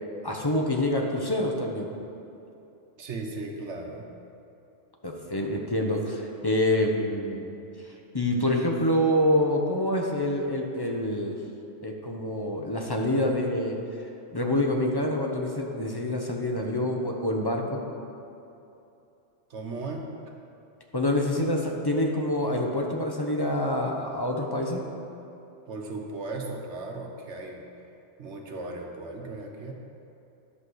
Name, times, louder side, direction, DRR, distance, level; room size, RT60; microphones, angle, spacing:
voice 1, 0.2-1.9 5.0-7.5 8.1-11.4 11.8-13.8 14.3-17.8 20.9-24.8, left 1 dB, 20° left, 0 dB, 0.9 m, -26 dB
voice 2, 3.0-4.1 19.5-20.1 25.7-27.7 28.2-29.7, right 3 dB, 70° right, 1 dB, 1.3 m, -36 dB
11.0 x 5.6 x 6.4 m, 2.8 s
omnidirectional pair, 1.2 m